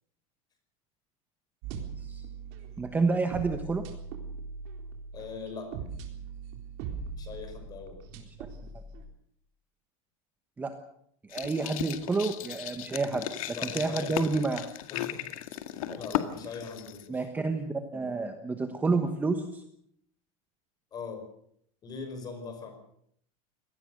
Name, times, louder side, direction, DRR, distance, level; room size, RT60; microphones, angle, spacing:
sound 1, 1.6-9.0, right 5 dB, 50° right, 4.0 m, -40 dB
voice 1, 2.8-3.8 10.6-10.7 11.3-14.7 15.9-16.0 17.1-19.6, right 3 dB, 10° right, 7 dB, 1.2 m, -29 dB
voice 2, 5.1-5.8 7.2-8.1 13.5-14.3 14.9-15.4 15.7-17.3 20.9-21.3 21.8-22.7, left 5 dB, 20° left, 6 dB, 5.4 m, -41 dB
sound 2, 11.3-17.1, left 12 dB, 80° left, 2.1 m, -36 dB
25.0 x 19.0 x 6.6 m, 0.69 s
supercardioid pair, 170°, 17 cm